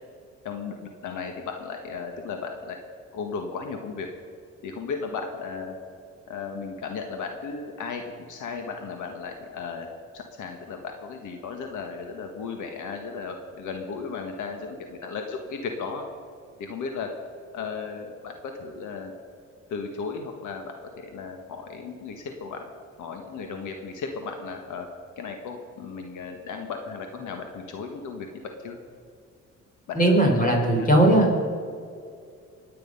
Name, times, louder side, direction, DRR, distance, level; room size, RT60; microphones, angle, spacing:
voice 1, 0.4-2.8 3.1-4.1 4.6-5.8 6.3-9.9 10.1-16.0 16.6-17.1 17.5-19.1 19.7-22.7 23.0-24.9 25.2-28.8 29.9-30.9, left 5 dB, 80° left, 4 dB, 1.6 m, -35 dB
voice 2, 29.9-31.4, right 1 dB, 25° left, 1 dB, 4.6 m, -19 dB
24.0 x 9.7 x 5.5 m, 2.3 s
cardioid pair, 90°, 30 cm